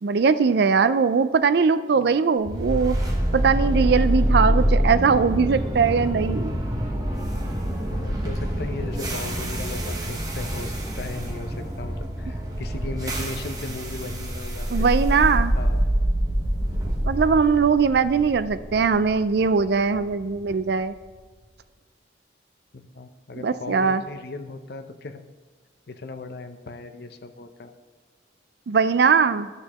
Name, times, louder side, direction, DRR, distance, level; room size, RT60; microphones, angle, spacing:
voice 1, 0.0-3.0 3.3-6.5 14.7-15.5 17.0-20.9 23.4-24.0 28.7-29.5, right 5 dB, 60° right, 13 dB, 0.4 m, -20 dB
sound 1, 2.4-20.5, equal, 20° right, 1.1 m, -26 dB
voice 2, 7.7-14.9 15.6-15.8 22.7-25.2 25.9-27.7, left 3 dB, 60° left, 8 dB, 0.6 m, -37 dB
12.0 x 6.5 x 3.0 m, 1.5 s
head